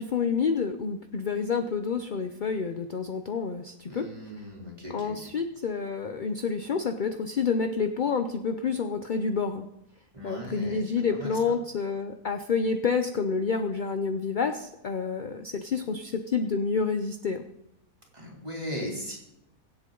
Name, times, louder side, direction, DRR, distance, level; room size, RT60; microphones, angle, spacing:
voice 1, 0.0-4.1 4.9-9.7 10.2-17.4, left 5 dB, 50° left, 7 dB, 0.5 m, -28 dB
voice 2, 3.9-5.1 10.1-10.8 11.1-11.3 18.1-19.2, equal, 20° right, -3 dB, 3.4 m, -37 dB
24.0 x 8.0 x 3.9 m, 0.85 s
omnidirectional pair, 1.7 m